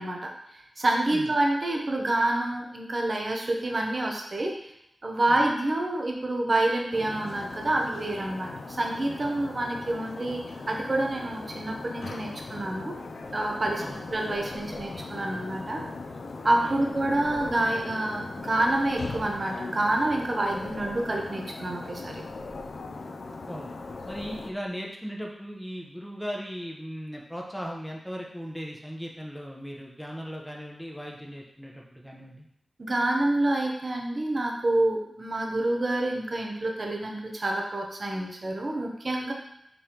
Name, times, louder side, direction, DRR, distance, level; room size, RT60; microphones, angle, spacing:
voice 1, 0.0-4.7 5.0-12.9 13.3-13.8 14.1-15.8 16.4-22.1 32.8-39.3, right 1 dB, 45° right, 1 dB, 0.8 m, -28 dB
sound 1, 6.9-24.5, left 3 dB, 75° left, 0.4 m, -39 dB
sound 2, 13.2-15.2 16.7-18.0 18.4-19.7 20.1-21.4 21.8-23.2 23.5-24.9, left 2 dB, 40° left, 1.0 m, -45 dB
voice 2, 24.0-32.5, equal, ahead, -2 dB, 0.9 m, -38 dB
5.2 x 3.4 x 3.0 m, 0.79 s
cardioid pair, 60°, 0 cm